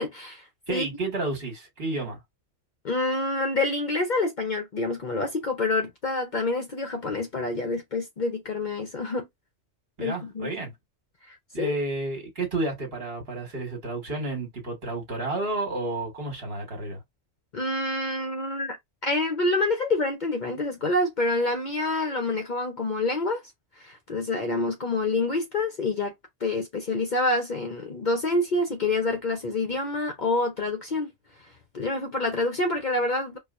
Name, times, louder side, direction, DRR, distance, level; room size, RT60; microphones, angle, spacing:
voice 1, 0.0-0.9 2.8-9.3 10.0-10.5 11.3-11.7 17.5-18.8 19.0-23.4 23.8-26.1 26.4-31.1 31.7-33.4, left 2 dB, 50° left, 0.7 m, -27 dB
voice 2, 0.7-2.2 10.0-10.7 11.5-17.0, right 2 dB, 55° right, 1.6 m, -31 dB
4.3 x 2.3 x 2.4 m
omnidirectional pair, 1.2 m